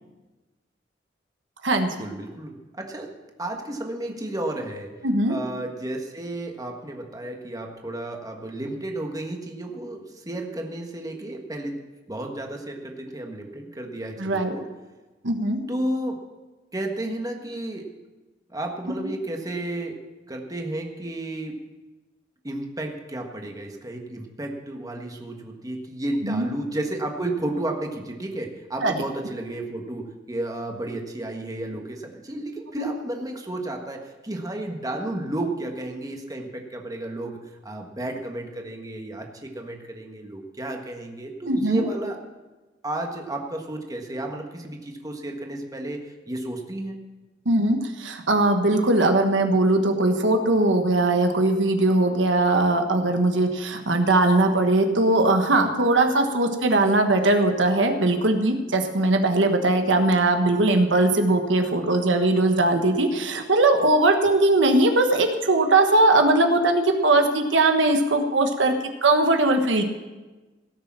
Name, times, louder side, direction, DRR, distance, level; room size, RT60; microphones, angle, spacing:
voice 1, 2.0-3.1 3.4-4.9 5.3-11.8 12.1-14.6 15.7-16.2 16.7-17.9 18.5-20.0 20.3-21.6 22.4-42.2 42.8-47.0, right 1 dB, 20° right, 2 dB, 1.5 m, -32 dB
voice 2, 5.0-5.4 14.2-14.5 15.2-15.6 26.2-26.4 28.8-29.0 32.8-32.9 41.5-41.9 47.4-68.7 69.0-69.8, right 2 dB, 85° right, 5 dB, 1.3 m, -20 dB
17.5 x 6.7 x 7.4 m, 1.2 s
head